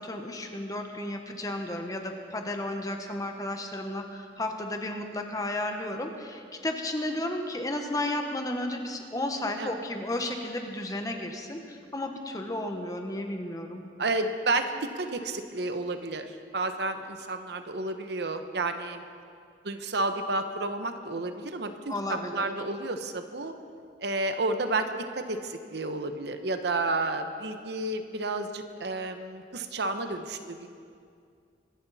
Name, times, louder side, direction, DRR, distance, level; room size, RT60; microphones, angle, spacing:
voice 1, 0.0-13.8 21.9-22.5, left 1 dB, 20° left, 4 dB, 1.1 m, -33 dB
voice 2, 14.0-19.0 19.6-23.5 24.0-30.7, right 2 dB, 60° right, 7 dB, 0.9 m, -31 dB
24.0 x 11.0 x 4.1 m, 2.3 s
head